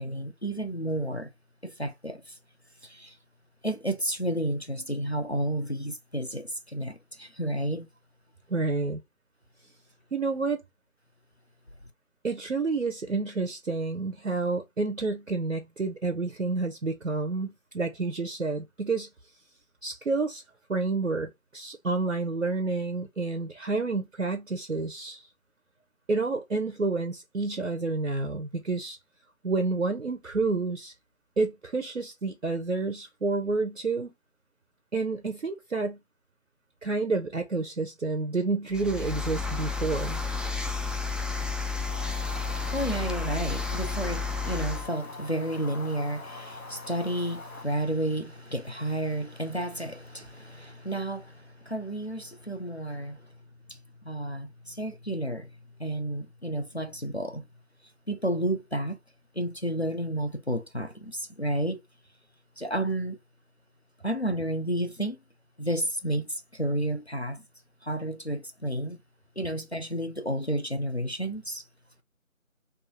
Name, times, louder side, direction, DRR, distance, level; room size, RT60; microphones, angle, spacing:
voice 1, 0.0-1.3 1.6-2.4 2.8-3.2 3.6-7.9 42.3-53.2 53.7-53.8 54.0-55.5 55.8-57.5 58.1-59.0 59.3-61.8 62.6-63.2 64.0-65.2 65.6-67.4 67.8-69.0 69.4-71.6, right 1 dB, 50° left, 0.5 m, -31 dB
voice 2, 8.5-9.0 10.1-10.6 12.2-19.1 19.8-20.4 20.7-25.3 26.1-29.0 29.4-30.9 31.4-34.1 34.9-36.0 36.8-40.2, right 3 dB, 70° right, 0.7 m, -29 dB
sound 1, 38.7-44.9, left 4 dB, ahead, 0.4 m, -31 dB
sound 2, 41.9-47.6, left 3 dB, 85° left, 1.0 m, -44 dB
3.6 x 2.6 x 2.7 m
figure-of-eight pair, 180°, 41 cm